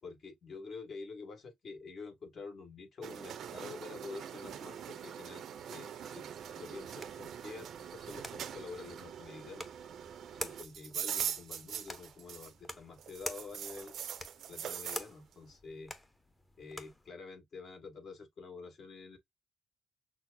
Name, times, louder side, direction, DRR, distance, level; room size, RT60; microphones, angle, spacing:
voice 1, 0.0-9.7 10.3-14.0 14.5-15.9 16.6-19.2, left 4 dB, 50° left, 1.7 m, -48 dB
sound 1, 3.0-12.7 13.0-15.1, right 9 dB, 70° right, 0.6 m, -43 dB
sound 2, 6.3-17.1, left 1 dB, 15° left, 0.8 m, -48 dB
5.9 x 2.0 x 2.3 m
cardioid pair, 90°, 0 cm